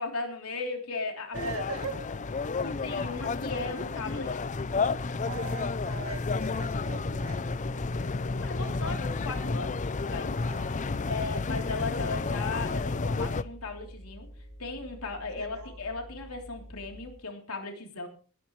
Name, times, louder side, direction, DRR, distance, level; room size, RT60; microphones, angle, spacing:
voice 1, 0.0-1.4 2.6-4.5 7.7-10.4 11.1-14.3 14.6-18.1, left 3 dB, 80° left, 3 dB, 3.4 m, -37 dB
sound 1, 1.3-13.4, left 3 dB, 35° left, 0.5 m, -31 dB
voice 2, 1.3-2.0 5.2-7.5 10.4-11.4 15.4-15.8, right 3 dB, 75° right, 6 dB, 2.0 m, -40 dB
sound 2, 10.3-17.2, equal, 15° left, 4.4 m, -48 dB
19.0 x 12.5 x 3.2 m, 0.36 s
head